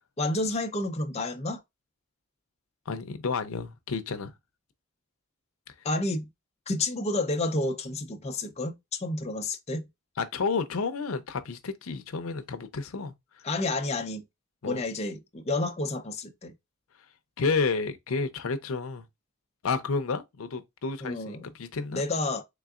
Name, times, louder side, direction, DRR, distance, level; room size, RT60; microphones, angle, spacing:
voice 1, 0.2-1.6 5.8-6.3 6.7-9.8 13.4-14.2 14.7-16.5 21.0-21.5 21.9-22.4, left 2 dB, 30° left, 0.6 m, -30 dB
voice 2, 2.9-4.3 5.7-5.8 10.2-13.5 14.6-14.8 17.4-19.1 19.6-22.0, left 4 dB, 85° left, 0.6 m, -31 dB
3.9 x 3.5 x 2.3 m
head